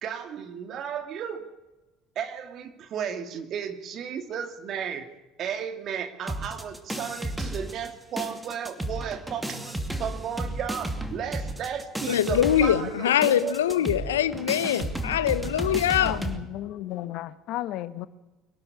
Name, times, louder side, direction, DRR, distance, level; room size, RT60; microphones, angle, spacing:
voice 1, 0.0-1.5 2.2-5.1 5.4-13.5 13.8-14.3, right 8 dB, 55° right, 2.5 m, -34 dB
sound 1, 6.3-7.9 8.2-16.4, right 1 dB, 10° right, 2.6 m, -33 dB
voice 2, 12.1-16.2, left 10 dB, 85° left, 0.9 m, -23 dB
voice 3, 16.0-18.1, left 14 dB, 65° left, 1.1 m, -33 dB
24.0 x 12.0 x 9.6 m
hypercardioid pair, 65°, 0 cm